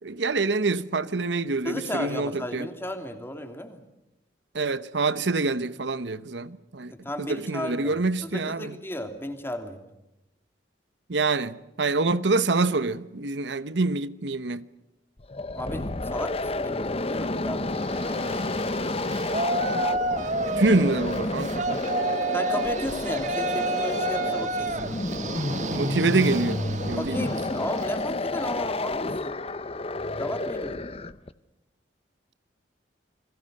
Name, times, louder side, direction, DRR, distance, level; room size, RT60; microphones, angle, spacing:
voice 1, 0.0-2.7 4.5-6.9 7.2-8.8 11.1-14.6 20.6-21.7 22.1-22.2 25.7-26.6 26.9-27.3, right 3 dB, 85° right, 1.0 m, -26 dB
voice 2, 1.6-3.8 6.9-9.8 15.5-18.5 22.3-24.9 27.0-29.4 30.2-30.8, left 1 dB, 15° left, 3.0 m, -34 dB
sound 1, 15.2-31.3, left 2 dB, 35° left, 0.9 m, -30 dB
Yell, 17.7-27.9, right 2 dB, 40° right, 2.1 m, -30 dB
29.5 x 22.0 x 6.6 m
head